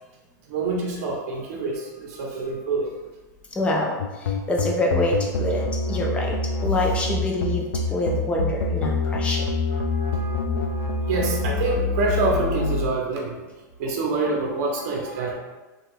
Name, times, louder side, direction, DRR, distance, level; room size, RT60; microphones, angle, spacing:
voice 1, 0.5-2.9 9.7-13.4 13.8-15.4, right 3 dB, 55° right, -1 dB, 0.7 m, -27 dB
voice 2, 3.5-9.5, left 1 dB, 10° left, -2 dB, 0.5 m, -26 dB
sound 1, 4.0-12.9, left 3 dB, 85° left, 0.4 m, -25 dB
2.8 x 2.3 x 3.5 m, 1.2 s
supercardioid pair, 145°, 10 cm